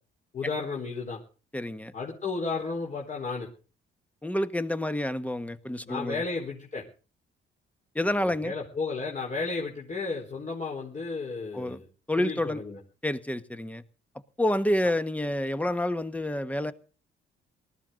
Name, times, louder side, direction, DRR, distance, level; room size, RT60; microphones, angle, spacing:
voice 1, 0.3-1.2 1.9-3.5 5.9-6.8 8.0-11.9 12.2-12.8, left 4 dB, 40° left, -2 dB, 4.5 m, -33 dB
voice 2, 1.5-1.9 4.2-6.2 7.9-8.5 11.5-11.8 12.1-12.6 13.0-13.8 14.4-16.7, left 1 dB, 5° left, 11 dB, 1.3 m, -28 dB
19.0 x 13.5 x 3.9 m, 0.36 s
cardioid pair, 90°, 20 cm